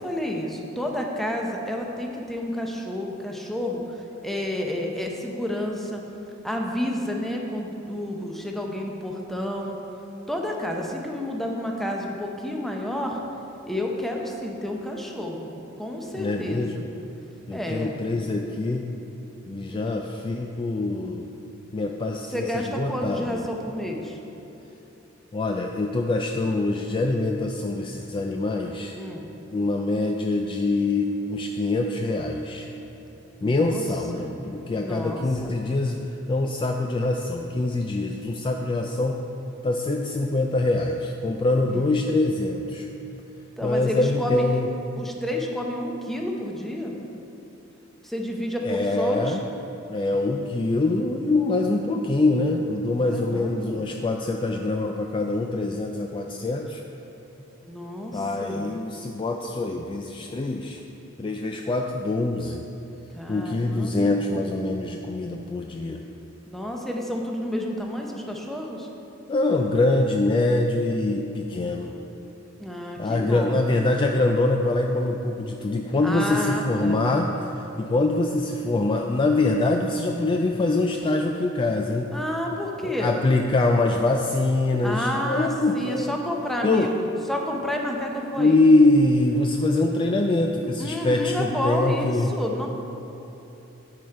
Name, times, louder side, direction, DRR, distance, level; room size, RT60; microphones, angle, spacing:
voice 1, 0.0-6.0 6.4-9.8 10.3-13.2 13.7-16.9 17.5-18.2 22.3-24.2 28.9-29.3 33.4-33.8 34.1-34.3 34.8-35.6 41.7-41.9 43.6-44.4 45.0-47.0 48.0-49.4 53.0-53.8 57.6-58.7 63.2-64.2 66.5-68.9 72.6-73.6 76.0-77.1 82.1-83.2 84.8-88.6 90.8-92.7, left 1 dB, ahead, 0 dB, 0.7 m, -30 dB
voice 2, 16.1-16.9 17.5-18.8 19.5-21.3 21.7-23.4 25.3-28.9 29.5-32.7 33.4-36.0 36.3-39.2 39.6-42.9 43.6-44.7 48.6-49.4 49.9-56.8 58.1-60.8 61.2-62.6 63.3-66.0 69.3-71.9 73.0-82.1 82.8-86.2 86.6-86.9 88.4-92.3, left 2 dB, 25° left, 2 dB, 0.3 m, -24 dB
9.3 x 5.0 x 4.5 m, 3.0 s
head